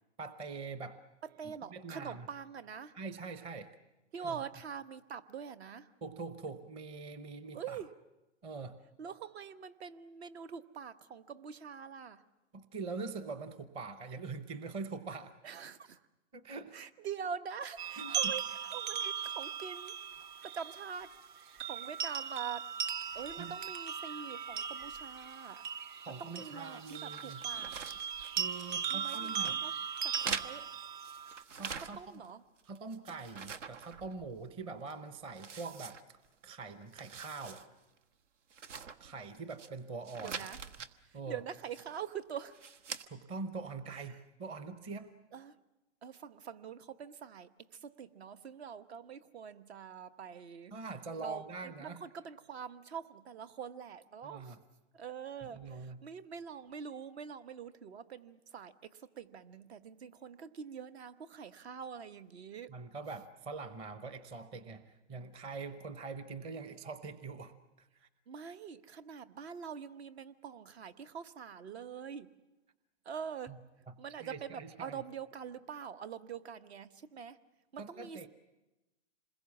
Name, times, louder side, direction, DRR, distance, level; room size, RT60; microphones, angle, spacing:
voice 1, 0.2-1.0 1.4-2.3 2.9-3.7 4.2-4.4 6.0-7.8 8.4-8.8 12.5-15.3 16.3-16.8 18.0-18.3 23.4-23.5 26.1-27.4 28.4-29.6 30.3-30.4 31.6-32.0 32.7-36.2 36.4-37.6 39.0-40.4 41.1-41.4 43.1-45.1 50.7-52.0 54.2-54.6 55.5-56.0 62.7-68.1 73.5-73.6 74.2-75.0 77.8-78.3, right 4 dB, 15° right, 12 dB, 0.7 m, -43 dB
voice 2, 1.2-2.9 4.1-5.9 7.5-7.9 9.0-12.2 15.4-16.0 16.7-19.9 20.4-21.1 21.6-22.7 23.1-25.6 26.1-27.8 28.9-29.7 30.0-30.7 31.8-32.4 40.2-40.6 41.1-42.6 45.3-45.5 46.0-50.7 51.2-54.6 54.9-62.7 68.3-72.3 73.0-73.5 74.0-77.4 77.7-78.3, right 7 dB, 60° right, 13 dB, 1.2 m, -44 dB
sound 1, 17.8-31.4, right 7 dB, 40° right, 0.9 m, -38 dB
sound 2, 26.8-28.8 29.0-29.6 30.1-32.3 32.6-34.5 34.9-35.0 35.3-36.5 36.8-37.7 38.0-38.1 38.5-39.7 40.0-40.9 41.6-42.1 42.5-43.0, right 6 dB, 80° right, 1.3 m, -44 dB
27.0 x 21.5 x 7.2 m, 1.0 s
hypercardioid pair, 150°, 36 cm